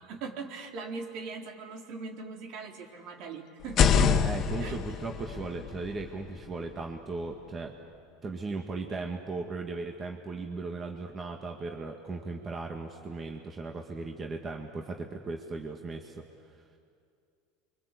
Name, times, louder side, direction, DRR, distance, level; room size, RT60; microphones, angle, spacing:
voice 1, 0.0-4.1 4.6-4.8, right 4 dB, 60° right, 2 dB, 3.7 m, -40 dB
sound 1, 3.6-7.4, left 7 dB, 40° left, 1.6 m, -28 dB
voice 2, 4.2-7.7 8.2-16.2, right 3 dB, 25° right, 3 dB, 1.9 m, -37 dB
29.5 x 24.5 x 8.3 m, 2.4 s
supercardioid pair, 115°, 0 cm